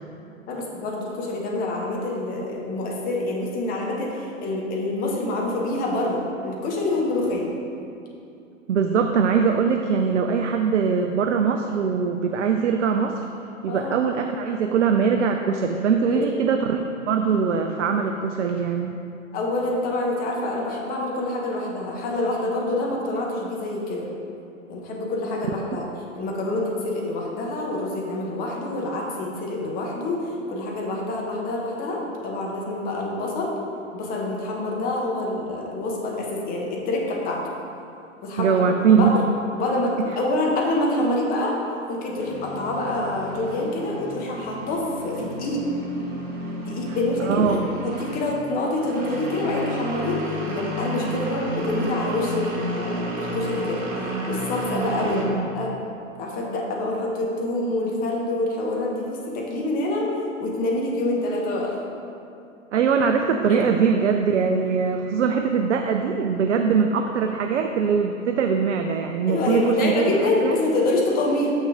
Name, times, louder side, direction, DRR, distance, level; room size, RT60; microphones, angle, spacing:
voice 1, 0.5-7.5 13.7-13.9 16.1-16.2 19.3-24.1 24.7-25.9 26.1-33.5 33.9-37.4 38.2-38.6 38.9-39.2 39.5-41.6 41.9-45.6 46.6-47.6 47.8-53.8 54.3-55.7 56.2-60.1 60.4-61.7 63.5-63.6 69.3-71.5, left 2 dB, 20° left, -2 dB, 1.0 m, -26 dB
voice 2, 8.7-13.2 13.6-18.9 25.7-25.8 38.4-39.1 47.2-47.7 55.1-55.5 62.7-70.5, right 6 dB, 65° right, 5 dB, 0.5 m, -22 dB
sound 1, 42.1-55.2, right 1 dB, 25° right, 1.5 m, -32 dB
6.5 x 5.9 x 3.5 m, 2.6 s
figure-of-eight pair, 110°, 39 cm